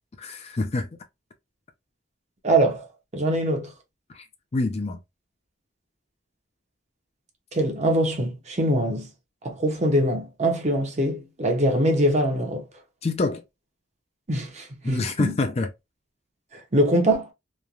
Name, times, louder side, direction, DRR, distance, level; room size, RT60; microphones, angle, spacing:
voice 1, 0.2-0.9 4.1-4.3 4.5-5.0 13.0-13.4 14.8-15.7, left 3 dB, 35° left, 0.4 m, -26 dB
voice 2, 2.4-2.9 3.1-3.7 7.5-9.1 9.4-12.6 14.3-15.3 16.7-17.3, right 1 dB, 35° right, 0.7 m, -23 dB
3.1 x 2.2 x 2.3 m
head